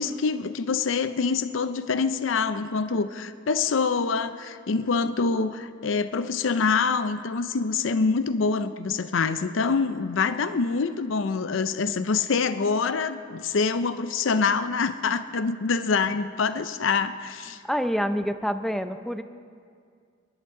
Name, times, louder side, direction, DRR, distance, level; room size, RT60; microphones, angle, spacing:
voice 1, 0.0-17.6, left 4 dB, 75° left, 12 dB, 0.5 m, -25 dB
voice 2, 17.7-19.2, equal, ahead, 8 dB, 0.6 m, -27 dB
30.0 x 11.0 x 3.8 m, 2.2 s
head